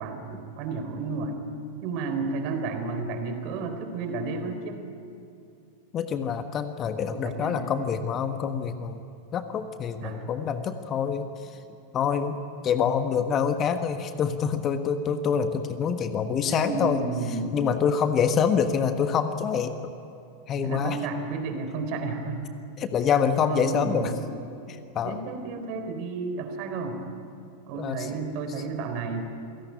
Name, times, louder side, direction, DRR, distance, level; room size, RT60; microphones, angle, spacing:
voice 1, 0.0-1.4 1.8-4.8 7.1-7.6 10.0-10.3 16.5-17.7 20.6-22.4 23.4-24.4 25.0-27.0 27.7-29.2, right 4 dB, 45° right, 7 dB, 3.8 m, -32 dB
voice 2, 5.9-9.0 9.3-11.5 11.9-17.0 17.5-19.7 20.5-21.0 22.8-24.1 24.7-25.2 27.7-28.1, left 7 dB, 30° left, 9 dB, 1.3 m, -26 dB
27.5 x 17.0 x 9.7 m, 2.5 s
figure-of-eight pair, 90°, 0 cm